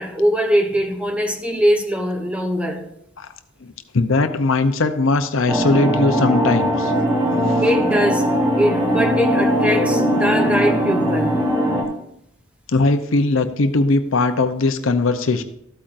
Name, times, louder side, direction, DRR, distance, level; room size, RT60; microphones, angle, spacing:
voice 1, 0.0-2.9 7.6-8.3 8.6-11.4, equal, 5° right, 1.1 m, -21 dB
voice 2, 3.6-6.9 7.5-7.6 12.7-15.4, left 3 dB, 80° left, 0.7 m, -19 dB
sound 1, 5.5-11.8, equal, 25° right, 2.6 m, -20 dB
13.5 x 8.5 x 2.6 m
head